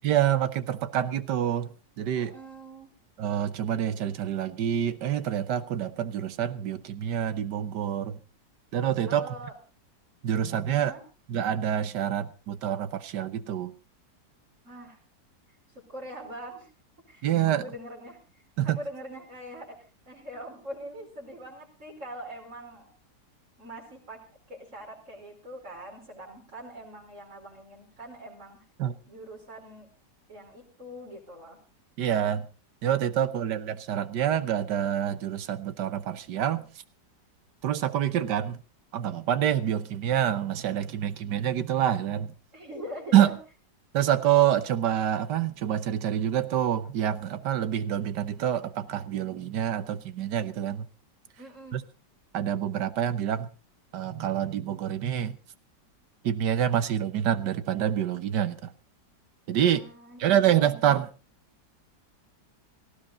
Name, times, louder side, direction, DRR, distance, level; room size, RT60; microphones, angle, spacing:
voice 1, 0.0-1.7 2.0-2.3 3.2-8.2 8.7-9.3 10.2-10.9 11.3-13.7 17.2-17.6 18.6-18.8 28.8-29.0 32.0-32.4 32.8-36.7 37.6-38.6 38.9-42.3 43.1-43.3 43.9-50.9 51.7-51.8 52.3-53.5 53.9-55.4 56.2-58.7 59.5-59.8 60.2-61.1, right 10 dB, 70° right, 14 dB, 1.5 m, -26 dB
voice 2, 2.1-2.9 9.1-9.6 10.7-11.0 14.6-15.0 15.5-15.6 15.9-16.7 17.1-22.9 23.6-24.2 24.5-28.6 29.0-29.9 30.3-31.6 42.5-43.3 51.4-51.8 59.5-60.7, equal, 40° right, 1 dB, 5.0 m, -43 dB
18.0 x 15.5 x 3.9 m, 0.33 s
omnidirectional pair, 1.9 m